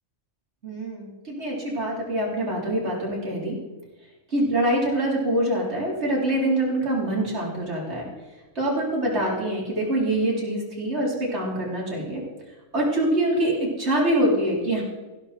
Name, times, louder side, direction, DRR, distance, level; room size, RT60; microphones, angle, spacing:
voice 1, 0.6-3.6 4.3-8.1 8.5-12.2 12.7-14.8, right 1 dB, 60° right, -4 dB, 4.5 m, -25 dB
15.5 x 12.5 x 4.5 m, 1.2 s
omnidirectional pair, 1.3 m